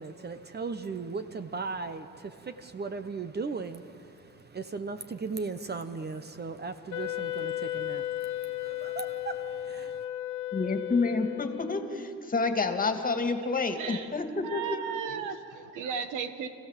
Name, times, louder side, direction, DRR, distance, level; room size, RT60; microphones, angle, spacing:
voice 1, 0.0-9.9, right 4 dB, 35° right, 10 dB, 1.0 m, -37 dB
Wind instrument woodwind instrument, 6.9-12.1, left 13 dB, 75° left, 0.8 m, -35 dB
voice 2, 10.5-14.8, left 3 dB, 30° left, 6 dB, 2.3 m, -29 dB
voice 3, 13.7-14.1 14.4-16.5, right 7 dB, 85° right, 9 dB, 1.5 m, -35 dB
29.0 x 16.0 x 7.5 m, 2.6 s
cardioid pair, 90°, 30 cm